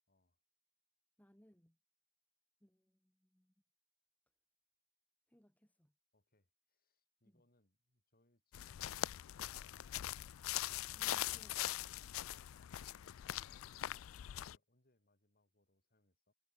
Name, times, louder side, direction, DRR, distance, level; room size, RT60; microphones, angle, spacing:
voice 1, 0.1-0.4 6.1-9.8 13.5-16.3, left 1 dB, 45° left, 6.3 m, -78 dB
voice 2, 1.2-1.8 2.6-3.5 5.3-5.9 7.2-7.4 10.9-12.3, equal, 10° left, 1.7 m, -68 dB
sound 1, 8.5-14.6, left 13 dB, 85° left, 0.4 m, -42 dB
head